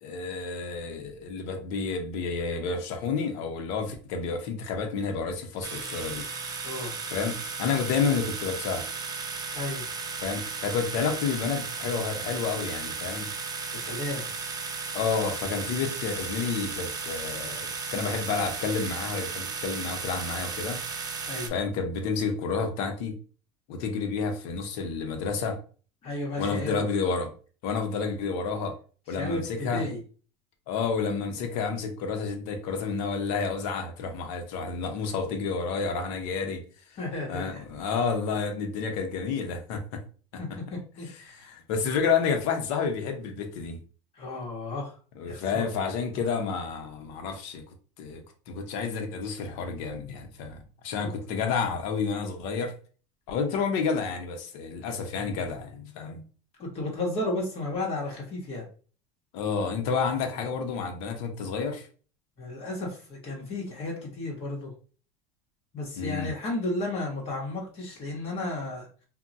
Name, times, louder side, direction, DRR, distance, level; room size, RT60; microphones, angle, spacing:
voice 1, 0.0-6.2 7.1-8.9 10.2-13.3 14.9-20.8 21.5-23.2 23.7-25.6 26.4-27.3 27.6-28.8 29.1-29.9 30.7-36.6 37.3-40.0 41.0-43.8 45.2-47.6 48.0-52.7 53.3-56.2 59.3-61.9 66.0-66.3, left 5 dB, 70° left, 0.8 m, -30 dB
sound 1, 5.6-21.5, right 4 dB, 25° right, 0.5 m, -35 dB
voice 2, 6.6-6.9 9.5-9.9 13.7-14.3 15.6-15.7 21.2-21.5 26.0-26.8 29.1-30.0 37.0-37.6 40.4-41.5 44.2-44.9 45.3-45.7 56.6-58.6 62.4-64.7 65.7-68.9, left 2 dB, 40° left, 1.1 m, -33 dB
2.2 x 2.2 x 3.9 m
supercardioid pair, 125°, 15 cm